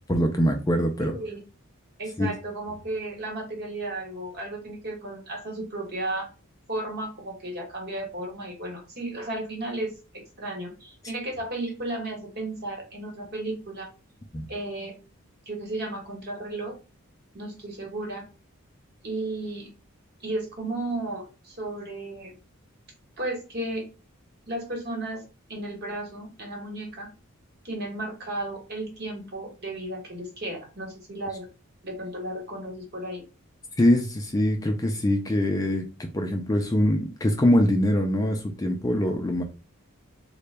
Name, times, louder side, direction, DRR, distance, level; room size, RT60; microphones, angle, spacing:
voice 1, 0.1-1.1 2.2-2.3 14.3-14.5 33.8-39.4, left 1 dB, 15° left, 3 dB, 0.3 m, -23 dB
voice 2, 1.0-1.4 2.0-6.3 6.7-9.9 10.4-13.9 14.5-15.0 15.5-16.8 17.3-18.3 19.0-19.7 20.2-22.4 23.2-23.8 24.5-25.2 25.5-27.1 27.6-31.5 31.8-33.2, right 2 dB, 45° right, 1 dB, 1.1 m, -34 dB
3.8 x 2.2 x 3.2 m, 0.32 s
head